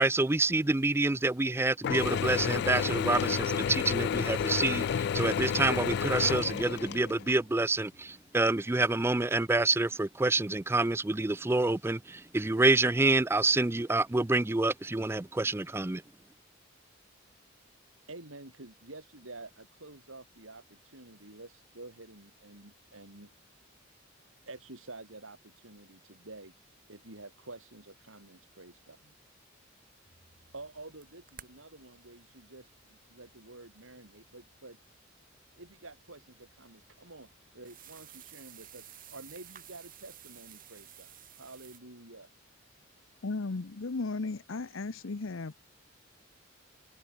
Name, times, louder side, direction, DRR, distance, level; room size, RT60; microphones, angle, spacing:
voice 1, 0.0-16.0, right 2 dB, 10° right, 0.4 m, -27 dB
Mechanisms / Drill, 1.8-7.3, left 7 dB, 55° left, 0.3 m, -30 dB
voice 2, 18.1-23.3 24.4-26.5 26.9-29.1 30.5-34.8 35.6-42.3, right 2 dB, 85° right, 5.8 m, -49 dB
sound 1, 30.1-41.8, right 10 dB, 45° right, 3.5 m, -56 dB
voice 3, 43.2-45.6, left 3 dB, 75° left, 0.8 m, -35 dB
head